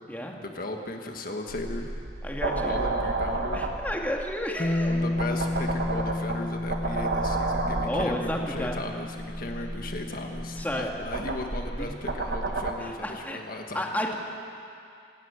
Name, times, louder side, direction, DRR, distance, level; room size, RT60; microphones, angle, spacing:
voice 1, 0.4-1.9 2.6-3.7 4.9-13.8, left 2 dB, 55° left, 3 dB, 1.7 m, -36 dB
sound 1, 1.5-12.7, right 2 dB, 70° right, 1.7 m, -32 dB
voice 2, 2.2-2.7 3.5-4.9 7.8-8.8 10.6-11.1 11.8-11.9 12.8-13.4 13.7-14.1, left 1 dB, 10° left, 0 dB, 2.1 m, -31 dB
Bass guitar, 4.6-10.8, left 1 dB, 35° left, 1.1 m, -32 dB
25.5 x 13.0 x 9.6 m, 2.5 s
head